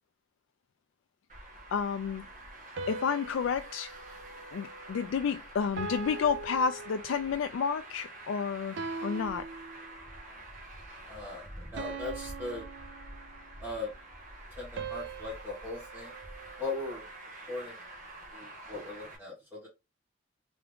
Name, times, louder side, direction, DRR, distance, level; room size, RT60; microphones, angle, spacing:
Traffic noise roadway noise, 1.3-19.2, right 1 dB, 40° right, 1.3 m, -47 dB
voice 1, 1.7-2.2 2.9-3.9 4.5-9.5, left 6 dB, 80° left, 0.3 m, -31 dB
sound 1, 2.8-5.3 5.8-7.5 8.8-10.3 11.8-13.6 14.8-17.1, right 4 dB, 70° right, 0.4 m, -42 dB
voice 2, 11.1-11.4 11.7-12.6 13.6-13.9 14.6-16.1 16.6-17.1 17.5-17.8 18.3-19.7, left 3 dB, 10° right, 1.4 m, -39 dB
3.5 x 3.5 x 3.5 m
head